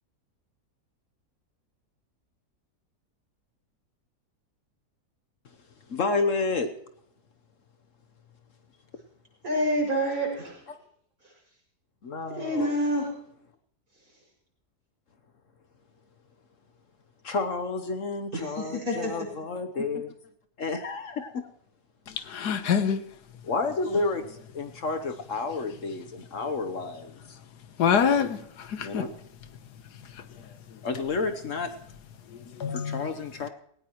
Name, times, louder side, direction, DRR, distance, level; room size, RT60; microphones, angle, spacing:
voice 1, 5.9-6.7 10.7-10.8 12.0-12.7 17.2-20.1 20.6-21.5 23.4-27.4 28.8-29.2 30.8-31.7 32.7-33.5, left 3 dB, 55° left, 1.2 m, -30 dB
voice 2, 9.4-10.6 12.3-13.1 18.3-19.1, equal, 65° right, 7.0 m, -27 dB
voice 3, 22.3-23.0 27.8-29.0 32.6-33.0, left 7 dB, 90° left, 1.6 m, -25 dB
18.5 x 18.0 x 3.1 m
omnidirectional pair, 1.7 m